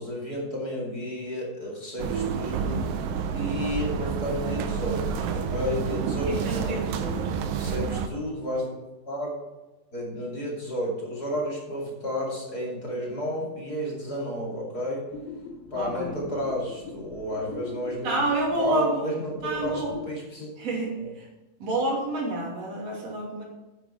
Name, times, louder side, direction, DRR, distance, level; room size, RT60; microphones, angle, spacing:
voice 1, 0.0-3.1 3.3-6.8 7.5-8.7 9.1-9.4 9.9-15.1 15.7-18.2 18.6-20.5 21.0-21.1, left 1 dB, 30° left, -4 dB, 2.1 m, -32 dB
sound 1, 2.0-8.1, right 6 dB, 85° right, 1.9 m, -29 dB
voice 2, 6.3-7.3 15.7-16.2 18.0-19.1 19.4-19.9 20.6-21.3 21.6-23.4, right 2 dB, 40° right, -3 dB, 3.3 m, -29 dB
sound 2, 15.1-20.2, left 3 dB, 90° left, 3.8 m, -42 dB
9.4 x 9.4 x 4.4 m, 1.1 s
omnidirectional pair, 5.0 m